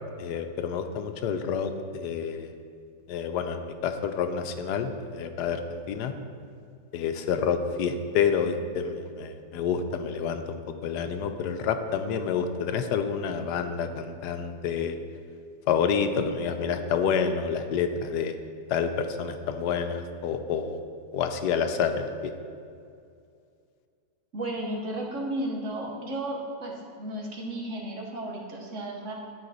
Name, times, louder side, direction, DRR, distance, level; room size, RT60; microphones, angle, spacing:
voice 1, 0.2-2.5 3.1-6.1 6.9-15.0 15.7-18.3 18.7-20.8 21.1-22.3, left 6 dB, 85° left, 7 dB, 1.2 m, -28 dB
voice 2, 24.3-29.1, right 1 dB, 50° right, 0 dB, 1.2 m, -33 dB
11.0 x 4.9 x 4.0 m, 2.3 s
omnidirectional pair, 1.8 m